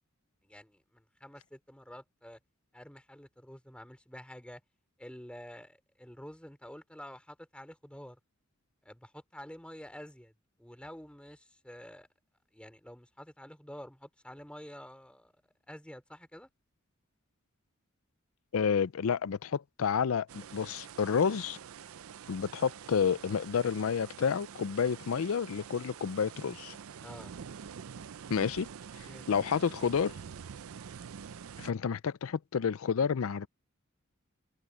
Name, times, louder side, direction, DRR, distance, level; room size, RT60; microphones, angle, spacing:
voice 1, 0.4-2.4 2.7-4.6 5.0-8.2 8.8-10.3 10.6-12.1 12.5-15.3 15.7-16.5 27.0-27.3 29.0-29.3, equal, 5° left, 3.2 m, -49 dB
voice 2, 18.5-21.6 22.3-26.8 28.3-28.7 29.0-30.1 31.6-33.5, left 6 dB, 75° left, 0.4 m, -30 dB
sound 1, 20.3-31.7, right 7 dB, 80° right, 0.5 m, -47 dB
head